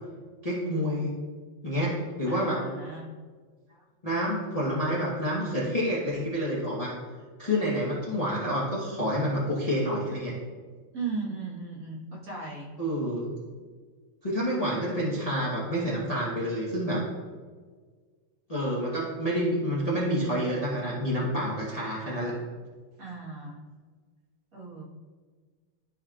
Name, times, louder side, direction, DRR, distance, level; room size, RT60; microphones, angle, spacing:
voice 1, 0.4-1.1 1.6-2.6 4.0-6.9 7.4-10.3 12.8-13.3 14.2-17.0 18.5-22.3, equal, 25° left, -6 dB, 1.0 m, -28 dB
voice 2, 2.3-3.1 3.7-3.8 10.9-12.7 23.0-23.6 24.5-24.8, right 4 dB, 45° right, -6 dB, 1.9 m, -37 dB
12.5 x 4.3 x 2.4 m, 1.5 s
omnidirectional pair, 2.2 m